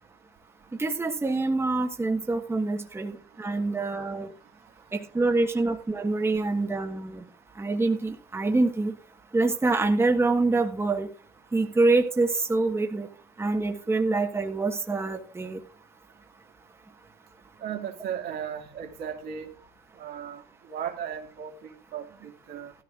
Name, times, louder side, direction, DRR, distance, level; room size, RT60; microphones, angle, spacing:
voice 1, 0.8-4.3 4.9-7.2 7.6-8.9 9.3-11.1 11.5-13.1 13.4-15.6, right 3 dB, 15° right, 1.3 m, -25 dB
voice 2, 17.6-19.5 20.0-22.7, right 8 dB, 70° right, 2.3 m, -36 dB
16.5 x 13.0 x 2.5 m
cardioid pair, 110°, 17 cm